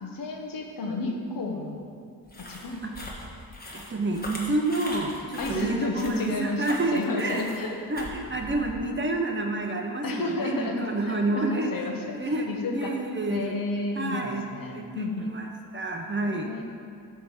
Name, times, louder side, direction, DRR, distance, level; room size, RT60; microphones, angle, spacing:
voice 1, 0.0-2.1 2.4-2.8 5.4-7.8 10.0-12.9 13.3-15.3 16.4-16.6, left 2 dB, 60° left, 2 dB, 1.2 m, -32 dB
sound 1, 2.3-8.9, left 1 dB, 25° left, 1.5 m, -41 dB
voice 2, 3.7-7.5 7.9-11.7 12.1-13.6 13.9-14.4 14.7-15.5 15.7-16.6, right 2 dB, 30° right, 2 dB, 0.8 m, -29 dB
9.5 x 3.6 x 6.5 m, 2.4 s
cardioid pair, 95°, 38 cm